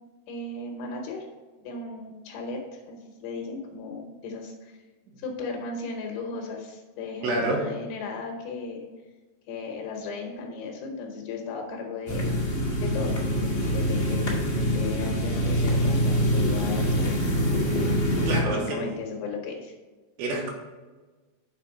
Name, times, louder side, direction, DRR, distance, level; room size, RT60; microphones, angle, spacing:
voice 1, 0.3-1.3 1.6-4.8 5.2-8.9 9.5-12.5 12.8-17.2 18.4-19.7, left 4 dB, 75° left, 2 dB, 3.1 m, -36 dB
voice 2, 7.2-7.6 18.3-18.9 20.2-20.5, right 2 dB, 75° right, -3 dB, 3.5 m, -27 dB
sound 1, 12.1-18.4, equal, 60° left, 0.7 m, -25 dB
7.5 x 5.0 x 5.6 m, 1.3 s
omnidirectional pair, 5.6 m